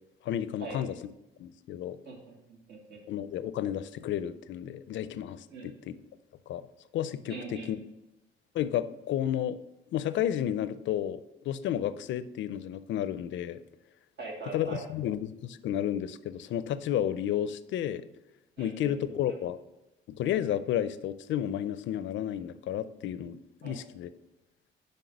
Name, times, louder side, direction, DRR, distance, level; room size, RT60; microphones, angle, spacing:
voice 1, 0.2-1.0 1.4-2.0 3.1-6.0 6.5-6.7 6.9-7.8 8.5-9.6 9.9-13.6 14.5-18.0 18.6-19.6 20.1-24.1, left 10 dB, 70° left, 14 dB, 0.4 m, -32 dB
voice 2, 2.1-3.0 5.5-5.7 7.3-7.7 14.2-14.8 18.6-19.4 23.6-23.7, right 4 dB, 60° right, -2 dB, 2.2 m, -42 dB
5.9 x 5.2 x 5.1 m, 0.94 s
cardioid pair, 90°, 20 cm